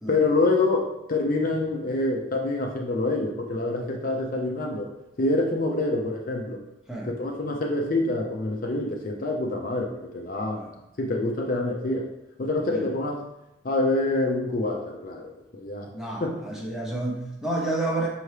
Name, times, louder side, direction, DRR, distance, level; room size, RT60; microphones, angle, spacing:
voice 1, 0.1-4.9 5.2-6.6 7.0-10.6 11.0-12.1 12.4-13.2 13.6-15.9 16.2-16.4, left 2 dB, 40° left, 1 dB, 0.5 m, -26 dB
voice 2, 15.9-18.1, right 2 dB, 5° right, -3 dB, 0.7 m, -30 dB
5.9 x 2.8 x 3.2 m, 0.90 s
head